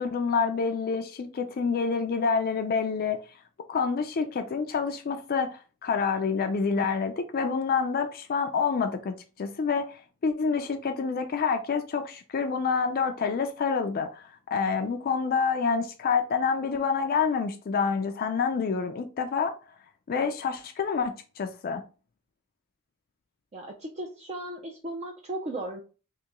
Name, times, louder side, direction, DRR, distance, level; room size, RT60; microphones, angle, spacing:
voice 1, 0.0-3.2 3.7-14.2 14.5-19.5 20.1-21.8, left 5 dB, 40° left, 0.4 m, -27 dB
voice 2, 23.5-25.8, right 1 dB, 30° right, 0.4 m, -36 dB
3.0 x 2.9 x 3.4 m
head